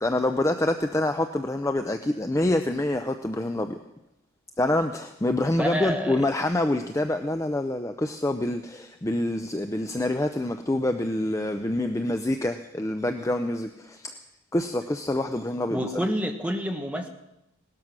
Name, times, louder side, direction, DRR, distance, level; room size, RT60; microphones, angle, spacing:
voice 1, 0.0-3.8 4.6-14.2 14.5-15.8, left 1 dB, 15° left, 7 dB, 0.5 m, -26 dB
voice 2, 5.6-6.2 15.7-17.1, equal, 5° right, 3 dB, 1.3 m, -28 dB
18.0 x 12.5 x 6.1 m, 0.90 s
head